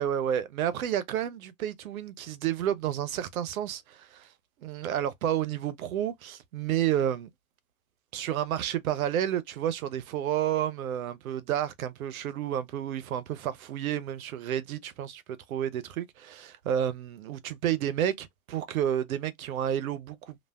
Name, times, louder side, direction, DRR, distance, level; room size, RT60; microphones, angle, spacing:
voice 1, 0.0-4.3 4.6-7.3 8.1-15.2 15.5-20.4, right 10 dB, 85° right, 0.7 m, -30 dB
3.3 x 2.4 x 2.2 m
hypercardioid pair, 110°, 41 cm